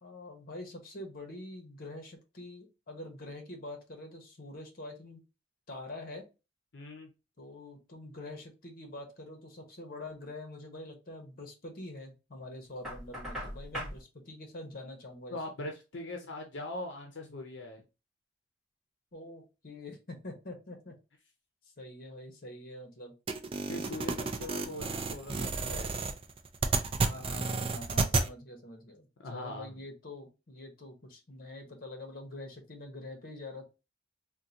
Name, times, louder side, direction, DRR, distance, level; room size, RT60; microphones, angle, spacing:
voice 1, 0.0-5.2 5.7-6.2 7.4-15.4 19.1-20.9 21.8-23.1 27.0-33.6, left 2 dB, 50° left, 3 dB, 1.0 m, -45 dB
voice 2, 6.7-7.1 15.3-17.8 23.7-25.9 29.2-29.7, left 2 dB, 75° left, 2 dB, 0.6 m, -41 dB
Knock, 12.8-14.0, equal, ahead, 1.3 m, -39 dB
sound 1, 23.3-28.3, right 4 dB, 30° right, 0.4 m, -31 dB
3.7 x 2.2 x 2.7 m, 0.28 s
head